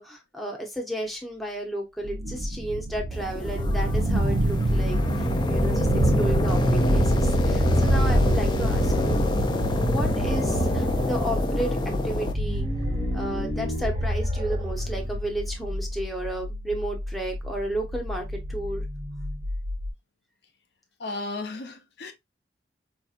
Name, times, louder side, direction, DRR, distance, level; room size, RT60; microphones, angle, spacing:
voice 1, 0.0-5.9 6.2-9.2 9.7-12.7 13.1-18.8, right 1 dB, ahead, 0.8 m, -33 dB
sound 1, 2.0-19.9, right 1 dB, 70° right, 0.6 m, -27 dB
sound 2, 3.1-12.3, left 1 dB, 25° left, 0.5 m, -27 dB
sound 3, 7.8-9.3 9.6-9.7 9.9-11.5 12.1-15.3, equal, 30° right, 1.2 m, -34 dB
voice 2, 21.0-22.1, left 2 dB, 70° left, 0.7 m, -34 dB
4.6 x 2.8 x 2.4 m
head